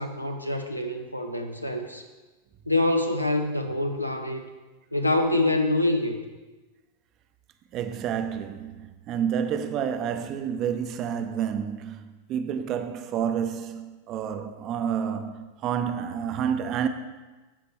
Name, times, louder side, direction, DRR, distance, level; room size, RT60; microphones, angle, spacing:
voice 1, 0.0-2.0 2.7-4.4 4.9-6.2, left 2 dB, 90° left, 0.7 m, -25 dB
voice 2, 7.7-16.9, right 8 dB, 35° right, 0.6 m, -29 dB
15.0 x 5.1 x 3.3 m
figure-of-eight pair, 90°, 0 cm